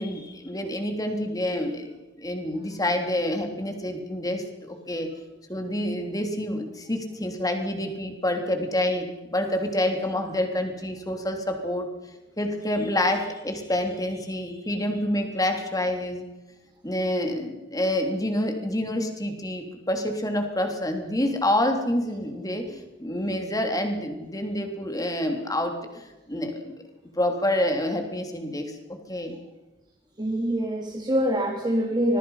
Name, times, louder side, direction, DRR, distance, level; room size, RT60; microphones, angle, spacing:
voice 1, 0.0-1.9 2.2-5.1 5.5-11.9 12.4-16.2 16.8-26.7 27.2-29.3, left 1 dB, 20° left, 5 dB, 3.3 m, -27 dB
voice 2, 30.2-32.2, equal, 25° right, 0 dB, 3.2 m, -25 dB
26.0 x 21.0 x 5.8 m, 1.1 s
head